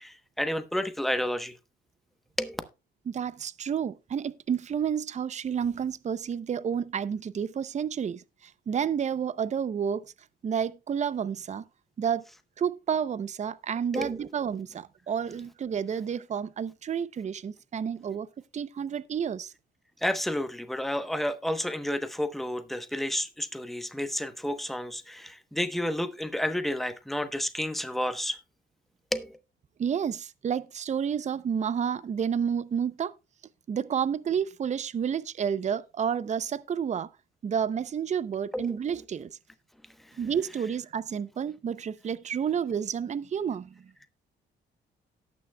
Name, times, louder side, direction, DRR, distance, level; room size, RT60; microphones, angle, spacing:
voice 1, 0.0-1.5 2.4-2.6 13.9-14.2 20.0-28.4 29.1-29.3 38.5-38.7, left 1 dB, ahead, 0.9 m, -31 dB
voice 2, 3.1-10.1 10.4-11.6 12.0-12.2 12.6-18.3 18.5-19.5 29.8-33.1 33.7-37.1 37.4-39.4 40.2-43.7, right 7 dB, 35° right, 0.6 m, -30 dB
18.0 x 6.2 x 2.2 m
cardioid pair, 90°, 20 cm